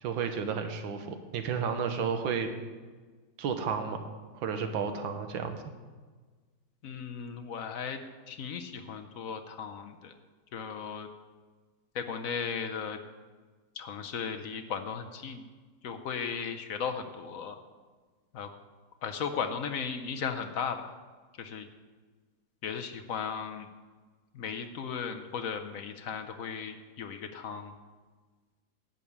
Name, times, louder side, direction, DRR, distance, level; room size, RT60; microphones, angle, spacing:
voice 1, 0.0-2.5 3.4-4.1 4.3-5.6, right 6 dB, 90° right, 7 dB, 1.7 m, -32 dB
voice 2, 6.8-8.0 8.3-10.1 10.5-11.1 11.9-13.0 13.8-15.4 15.8-17.6 18.3-18.5 19.0-20.9 21.4-21.7 22.6-23.7 24.3-27.8, left 6 dB, 60° left, 6 dB, 0.9 m, -36 dB
11.0 x 5.4 x 8.5 m, 1.4 s
omnidirectional pair, 2.1 m